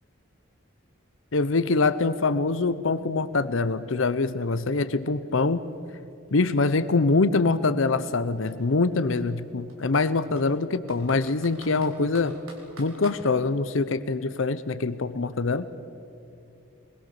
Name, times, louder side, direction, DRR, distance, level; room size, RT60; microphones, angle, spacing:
voice 1, 1.3-5.6 6.3-12.4 12.8-15.7, left 3 dB, 70° left, 14 dB, 0.7 m, -24 dB
Computer keyboard, 5.3-7.3 8.0-8.2 8.5-8.6 9.2-10.5 10.9-13.2, right 2 dB, 85° right, 4.2 m, -49 dB
23.0 x 21.5 x 6.8 m, 2.7 s
head